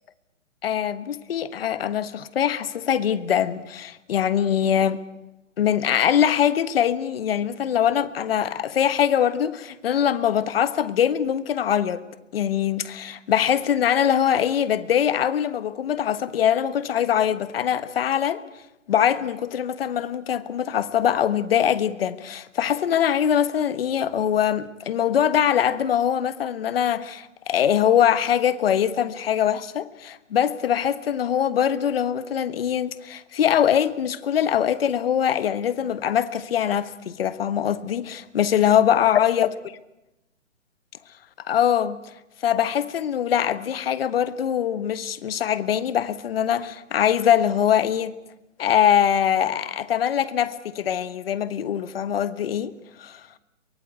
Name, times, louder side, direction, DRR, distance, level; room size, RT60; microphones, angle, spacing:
voice 1, 0.6-5.0 5.6-12.0 12.3-18.4 18.9-39.5 41.5-42.0 42.4-48.1 48.6-52.7 53.0-53.2, left 9 dB, 45° left, 1.4 m, -22 dB
23.0 x 21.5 x 8.3 m
hypercardioid pair, 140°, 39 cm